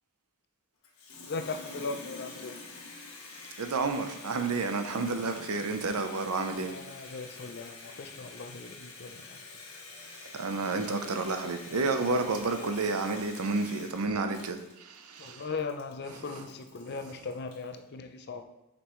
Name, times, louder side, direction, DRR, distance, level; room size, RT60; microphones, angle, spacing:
Water tap faucet, 0.8-17.8, left 3 dB, 75° left, 1.2 m, -47 dB
voice 1, 1.3-2.5 6.6-9.2 15.2-18.4, left 4 dB, 50° left, 0.5 m, -38 dB
voice 2, 3.6-6.7 10.3-15.5 16.0-16.5 16.8-17.2, right 3 dB, 80° right, 0.7 m, -31 dB
6.8 x 5.2 x 3.1 m
head